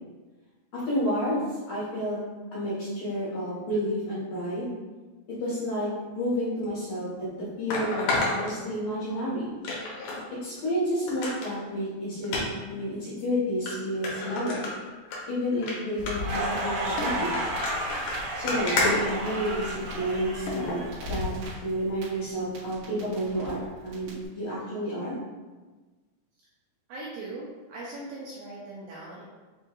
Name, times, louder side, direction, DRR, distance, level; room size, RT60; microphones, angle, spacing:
voice 1, 0.7-2.2 2.5-4.7 5.4-5.9 6.1-9.5 10.4-12.4 12.7-14.6 15.3-17.4 18.3-21.3 21.6-25.2, equal, 55° left, -10 dB, 2.1 m, -30 dB
sound 1, 6.6-6.7 7.7-9.1 9.6-10.2 10.6-10.7 11.1-11.5 12.2-12.4 13.2-13.3 13.7-13.8 14.0-15.2 15.5-15.7 16.1-16.4 17.1-19.8 20.6-20.8 21.3-21.4, left 2 dB, 70° left, 2.2 m, -30 dB
sound 2, 16.0-21.5, left 4 dB, 90° left, 2.8 m, -39 dB
Crackle, 16.2-22.0 22.3-24.1, right 1 dB, 65° right, 2.8 m, -33 dB
voice 2, 26.9-29.2, right 2 dB, 85° right, -6 dB, 2.1 m, -40 dB
7.4 x 2.6 x 2.4 m, 1.3 s
omnidirectional pair, 4.7 m